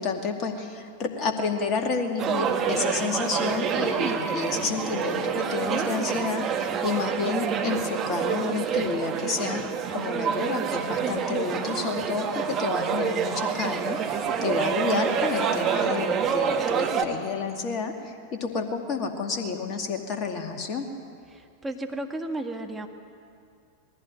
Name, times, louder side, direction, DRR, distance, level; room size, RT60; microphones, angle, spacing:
voice 1, 0.0-20.9, left 5 dB, 35° left, 3 dB, 2.2 m, -30 dB
sound 1, 2.2-17.0, right 7 dB, 30° right, 1.4 m, -27 dB
voice 2, 21.3-22.9, right 1 dB, 10° right, 3 dB, 1.7 m, -33 dB
20.0 x 15.5 x 9.4 m, 2.3 s
figure-of-eight pair, 90°, 0 cm